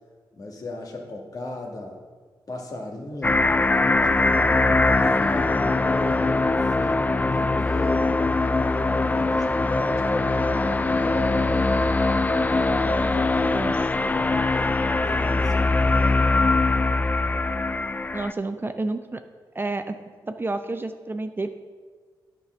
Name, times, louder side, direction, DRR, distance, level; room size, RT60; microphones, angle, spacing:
voice 1, 0.3-2.0 2.5-3.4 3.7-6.3 6.7-8.1 8.7-11.6 12.5-16.3, left 2 dB, 50° left, 0 dB, 2.0 m, -36 dB
sound 1, 3.2-18.3, left 3 dB, 20° left, 0.3 m, -22 dB
voice 2, 13.5-13.8 18.1-19.2 19.5-21.5, right 2 dB, 25° right, 8 dB, 0.6 m, -30 dB
9.9 x 5.2 x 6.3 m, 1.5 s
cardioid pair, 55°, 8 cm